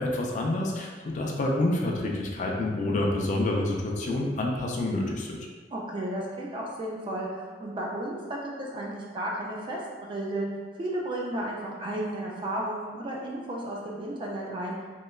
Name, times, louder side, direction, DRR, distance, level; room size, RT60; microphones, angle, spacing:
voice 1, 0.0-5.4, left 1 dB, 45° left, -1 dB, 0.4 m, -28 dB
voice 2, 5.7-10.5 10.8-14.7, right 1 dB, 30° right, -3 dB, 0.3 m, -33 dB
3.0 x 2.2 x 2.3 m, 1.5 s
head